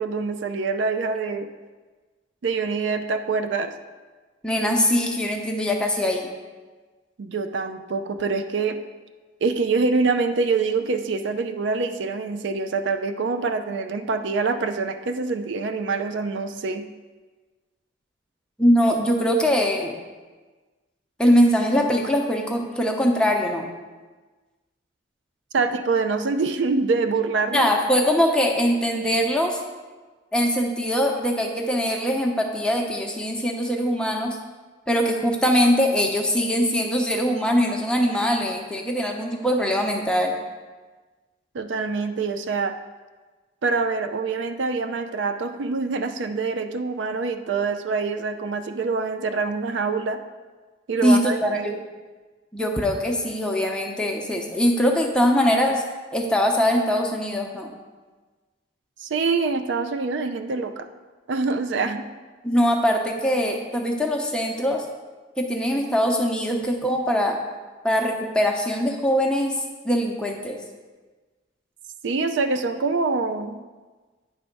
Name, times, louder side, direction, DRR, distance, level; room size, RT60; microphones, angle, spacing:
voice 1, 0.0-1.5 2.4-3.7 7.2-8.8 9.4-16.9 25.5-27.7 41.5-42.7 43.6-50.2 50.9-51.8 59.0-60.8 61.3-62.1 72.0-73.6, right 4 dB, 80° right, 8 dB, 0.5 m, -25 dB
voice 2, 4.4-6.3 18.6-19.9 21.2-23.7 27.5-29.6 30.3-34.4 34.9-40.3 51.0-51.8 52.5-55.8 56.1-57.7 62.4-64.8 65.4-67.4 67.8-69.5 69.8-70.6, equal, 5° left, 1 dB, 0.7 m, -22 dB
9.6 x 3.5 x 5.2 m, 1.3 s
head